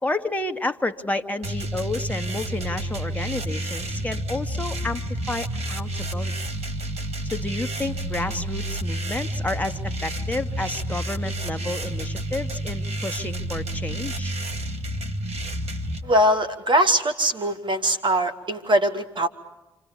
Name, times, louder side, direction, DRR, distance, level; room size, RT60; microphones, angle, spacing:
voice 1, 0.0-5.0 5.3-6.3 7.2-14.3, left 2 dB, 10° left, 6 dB, 2.2 m, -30 dB
sound 1, 1.4-16.0, right 1 dB, 60° right, 2.7 m, -30 dB
voice 2, 16.0-19.3, right 1 dB, 40° right, 10 dB, 2.9 m, -21 dB
28.5 x 26.0 x 7.0 m, 0.96 s
hypercardioid pair, 45°, 12 cm